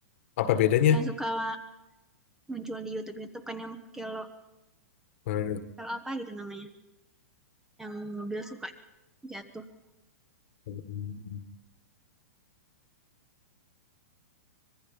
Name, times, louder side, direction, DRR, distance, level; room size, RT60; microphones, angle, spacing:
voice 1, 0.4-1.0 5.3-5.6 10.7-11.4, left 10 dB, 55° left, 11 dB, 1.7 m, -26 dB
voice 2, 0.9-1.6 2.5-4.3 5.8-6.7 7.8-8.7 9.2-9.7, right 1 dB, 5° right, 10 dB, 1.0 m, -36 dB
25.0 x 21.0 x 5.5 m, 0.99 s
hypercardioid pair, 145°, 8 cm